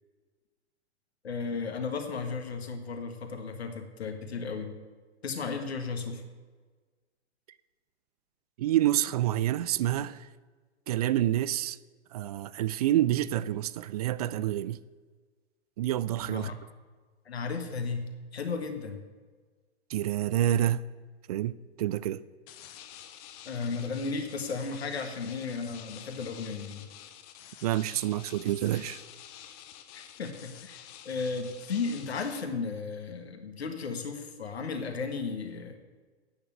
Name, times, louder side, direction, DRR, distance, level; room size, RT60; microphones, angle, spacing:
voice 1, 1.2-4.8 5.2-6.2 16.3-16.5 17.3-18.1 18.3-19.0 23.5-26.9 29.9-30.8 31.1-35.7, left 4 dB, 70° left, 1.8 m, -34 dB
voice 2, 8.6-10.3 10.9-11.8 12.1-14.8 15.8-16.5 19.9-20.8 21.3-21.5 21.8-22.2 27.6-29.0, right 13 dB, 35° right, 0.4 m, -28 dB
sound 1, 22.5-32.4, left 11 dB, 35° left, 1.0 m, -49 dB
9.4 x 6.9 x 8.6 m
figure-of-eight pair, 105°, 33 cm